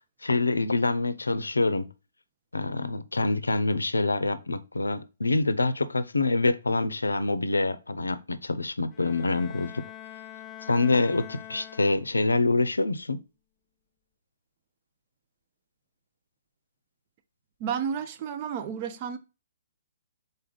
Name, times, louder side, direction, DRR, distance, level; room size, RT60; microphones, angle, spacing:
voice 1, 0.2-1.9 2.5-9.8 10.7-13.2, left 3 dB, 85° left, 0.5 m, -26 dB
Bowed string instrument, 8.9-12.4, left 11 dB, 20° left, 0.4 m, -44 dB
voice 2, 17.6-19.2, right 7 dB, 35° right, 0.6 m, -31 dB
4.0 x 3.4 x 3.9 m
figure-of-eight pair, 130°, 0 cm